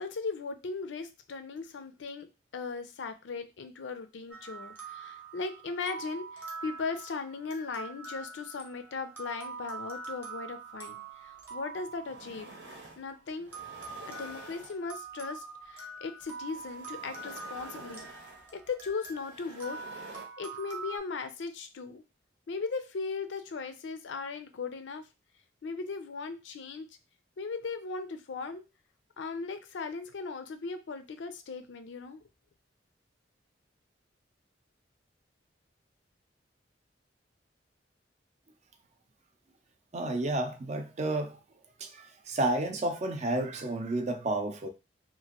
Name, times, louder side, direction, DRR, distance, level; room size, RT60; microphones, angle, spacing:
voice 1, 0.0-2.3 2.5-12.5 13.0-13.5 14.1-18.1 18.5-19.8 20.4-22.0 22.5-25.0 25.6-26.9 27.4-28.6 29.2-32.2, left 4 dB, 85° left, 0.5 m, -38 dB
sound 1, 4.3-12.9 13.5-21.0, right 4 dB, 10° right, 0.8 m, -44 dB
sound 2, 11.4-11.5 11.9-13.0 13.4-15.1 16.2-20.3, right 2 dB, 80° right, 0.8 m, -49 dB
voice 2, 39.9-41.4 41.8-44.7, right 2 dB, 40° right, 0.4 m, -31 dB
2.9 x 2.5 x 2.9 m
head